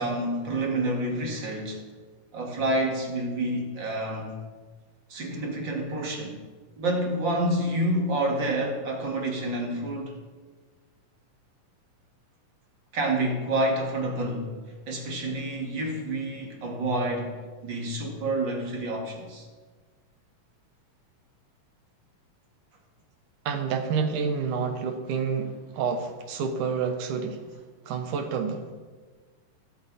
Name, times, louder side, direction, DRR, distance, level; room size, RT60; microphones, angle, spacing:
voice 1, 0.0-1.8 2.3-4.4 5.1-6.4 6.8-10.2 12.9-14.5 14.9-17.4 17.6-19.5, right 1 dB, 40° right, 0 dB, 2.4 m, -28 dB
voice 2, 23.5-27.4 27.9-28.7, right 6 dB, 70° right, 7 dB, 2.4 m, -28 dB
22.5 x 8.3 x 4.1 m, 1.4 s
omnidirectional pair, 3.9 m